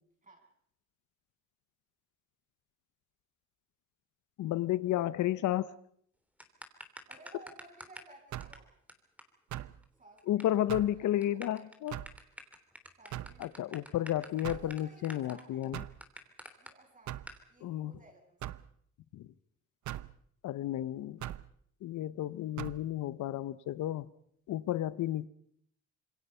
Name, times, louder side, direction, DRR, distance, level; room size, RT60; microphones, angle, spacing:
voice 1, 4.4-5.7 10.3-12.0 13.4-15.8 17.6-17.9 19.1-19.2 20.4-21.2 21.8-24.1 24.5-25.3, left 13 dB, 75° left, 0.9 m, -32 dB
sound 1, 6.4-8.1 8.4-8.6 8.9-9.0 9.2-9.3 9.5-9.6 9.8-10.4 10.7-10.9 11.2-16.7 17.3-17.4, equal, 5° right, 3.3 m, -48 dB
voice 2, 7.1-8.7 10.0-10.7 11.0-11.4 13.0-15.6 16.6-18.5, right 2 dB, 25° right, 7.6 m, -57 dB
sound 2, 8.3-8.6 9.5-9.8 10.7-11.0 11.9-12.2 13.1-13.4 14.4-14.7 15.7-16.0 17.1-17.3 18.4-18.7 19.9-20.1 21.2-21.5 22.6-22.8, right 14 dB, 70° right, 0.8 m, -40 dB
26.5 x 22.0 x 5.6 m
cardioid pair, 90°, 30 cm